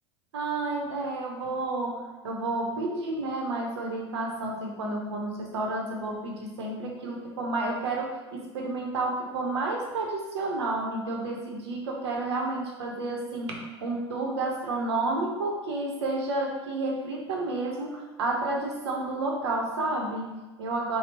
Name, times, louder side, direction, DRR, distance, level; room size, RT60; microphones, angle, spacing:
voice 1, 0.3-21.0, right 2 dB, 70° right, 0 dB, 0.9 m, -31 dB
4.3 x 2.3 x 4.1 m, 1.2 s
hypercardioid pair, 85°, 14 cm